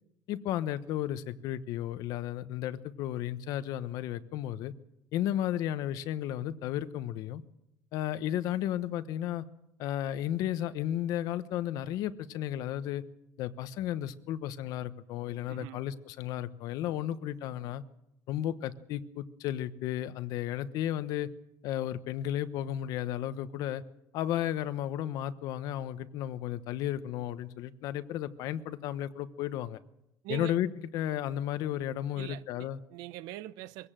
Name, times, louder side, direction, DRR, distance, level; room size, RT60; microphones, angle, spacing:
voice 1, 0.3-4.7 5.1-7.4 7.9-9.4 9.8-13.0 13.4-17.8 18.3-21.3 21.6-23.8 24.1-29.8 30.3-32.8, left 11 dB, 65° left, 1.0 m, -33 dB
voice 2, 15.5-15.8 30.2-30.6 32.1-33.9, right 15 dB, 85° right, 0.8 m, -42 dB
23.0 x 17.0 x 7.6 m
cardioid pair, 160°, 7 cm